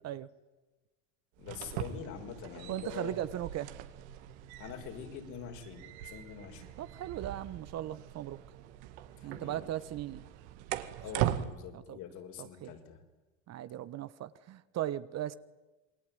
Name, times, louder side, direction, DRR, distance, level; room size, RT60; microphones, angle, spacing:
voice 1, 1.4-3.2 4.6-6.7 9.2-9.6 11.0-13.0, left 8 dB, 55° left, 4 dB, 5.7 m, -45 dB
sound 1, 1.4-11.5, right 12 dB, 70° right, 2.2 m, -40 dB
voice 2, 2.7-3.7 6.8-8.4 9.2-10.2 11.2-11.5 11.7-12.0 12.4-12.7 13.5-15.4, right 12 dB, 45° right, 14 dB, 1.3 m, -38 dB
27.5 x 21.0 x 9.5 m, 1.1 s
hypercardioid pair, 90°, 36 cm